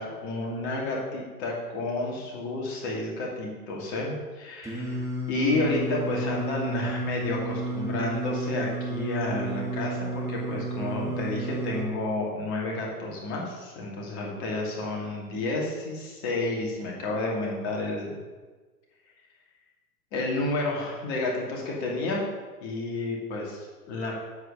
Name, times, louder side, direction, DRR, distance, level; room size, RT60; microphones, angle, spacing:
voice 1, 0.0-5.0 5.3-18.1 20.1-22.2 22.6-24.1, left 2 dB, 35° left, -2 dB, 2.6 m, -31 dB
Singing, 4.6-11.9, right 2 dB, 5° right, 1.3 m, -32 dB
7.9 x 4.8 x 6.7 m, 1.3 s
hypercardioid pair, 120°, 49 cm